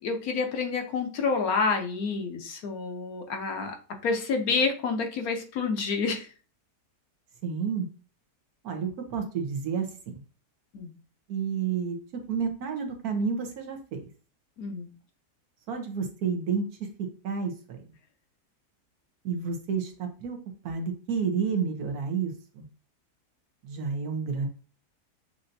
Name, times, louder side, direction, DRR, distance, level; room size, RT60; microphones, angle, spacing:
voice 1, 0.0-3.7 4.0-6.3 10.7-10.9 14.6-14.9, left 4 dB, 65° left, 4 dB, 1.2 m, -28 dB
voice 2, 7.4-7.9 8.6-9.9 11.3-14.0 15.7-16.7 17.2-17.5 19.2-20.4 20.6-22.6 23.6-24.5, right 6 dB, 70° right, 5 dB, 1.4 m, -30 dB
6.6 x 2.7 x 2.6 m, 0.37 s
omnidirectional pair, 1.7 m